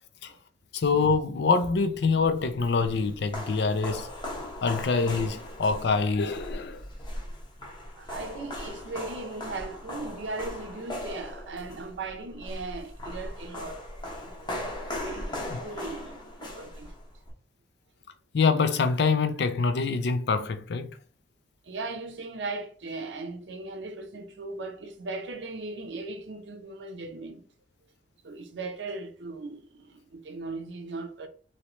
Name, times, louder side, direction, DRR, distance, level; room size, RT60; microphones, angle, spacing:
voice 1, 0.7-4.1 4.6-6.8 15.5-15.6 18.3-20.9, left 4 dB, 70° left, 0.5 m, -25 dB
sound 1, 2.3-17.3, left 1 dB, 25° left, 0.7 m, -38 dB
voice 2, 8.0-13.8 14.2-17.0 21.6-27.4 28.2-31.3, right 3 dB, 80° right, 0.6 m, -38 dB
3.0 x 2.8 x 3.1 m
head